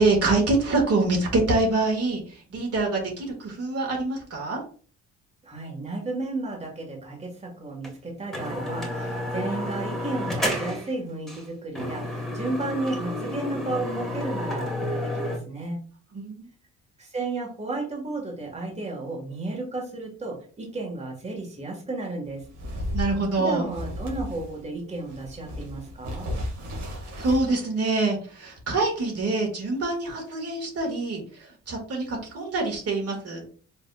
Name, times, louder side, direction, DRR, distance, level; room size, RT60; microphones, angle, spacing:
voice 1, 0.0-4.6 16.1-16.5 22.9-23.7 26.8-33.5, right 3 dB, 55° right, 0 dB, 1.9 m, -25 dB
voice 2, 5.4-15.8 17.0-22.4 23.4-26.3, right 2 dB, 20° right, -1 dB, 1.7 m, -33 dB
sound 1, 7.8-7.9 8.3-10.9 11.3-11.4 11.8-15.4, left 1 dB, ahead, 1.7 m, -30 dB
sound 2, 22.3-24.6 25.0-27.5, left 1 dB, 80° right, 2.1 m, -34 dB
5.4 x 3.5 x 2.4 m, 0.41 s
cardioid pair, 90°, 30 cm